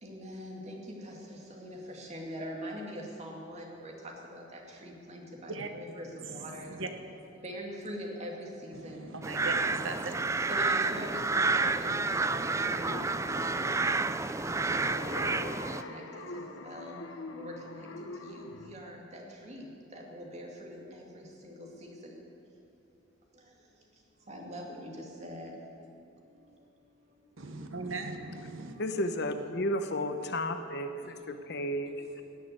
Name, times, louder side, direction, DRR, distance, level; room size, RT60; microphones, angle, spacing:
voice 1, 0.0-3.9 4.3-6.7 7.4-9.1 10.5-13.8 14.7-15.3 15.6-16.0 16.6-16.9 17.4-17.8 18.2-19.7 19.9-22.1 24.3-24.9 25.2-25.5, equal, 35° right, 0 dB, 2.3 m, -43 dB
voice 2, 6.2-6.9 8.7-10.1 27.4-28.8, right 3 dB, 90° right, 6 dB, 1.2 m, -39 dB
sound 1, 9.2-15.8, right 3 dB, 15° right, 0.3 m, -30 dB
sound 2, 11.7-18.7, left 3 dB, 85° left, 0.9 m, -44 dB
voice 3, 28.8-32.2, left 1 dB, 60° left, 8 dB, 0.9 m, -33 dB
18.0 x 6.5 x 9.4 m, 2.8 s
head